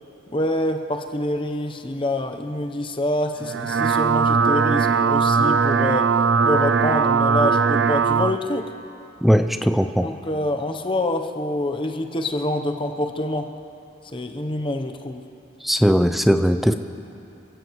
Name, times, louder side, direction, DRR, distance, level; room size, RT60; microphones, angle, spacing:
voice 1, 0.3-6.2 6.4-8.7 10.0-13.5 14.1-15.3, left 1 dB, 30° left, 5 dB, 0.8 m, -26 dB
sound 1, 3.4-8.4, right 5 dB, 80° right, 0.5 m, -19 dB
voice 2, 9.2-10.1 15.6-16.7, equal, ahead, 7 dB, 0.5 m, -18 dB
27.5 x 15.5 x 3.1 m, 2.8 s
head